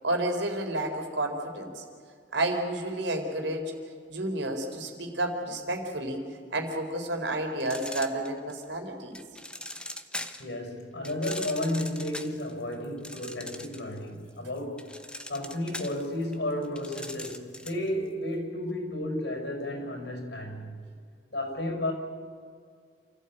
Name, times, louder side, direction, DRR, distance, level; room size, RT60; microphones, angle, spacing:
voice 1, 0.0-1.8 2.3-3.7 4.1-6.2 6.5-9.2, right 1 dB, 85° right, 4 dB, 4.0 m, -30 dB
sound 1, 7.6-8.6 9.2-10.5 11.0-14.0 14.3-17.9, left 1 dB, 5° left, 1.1 m, -40 dB
voice 2, 10.4-14.9 15.3-20.8 21.3-21.9, left 1 dB, 70° left, 3 dB, 5.9 m, -32 dB
28.5 x 15.0 x 8.9 m, 2.2 s
head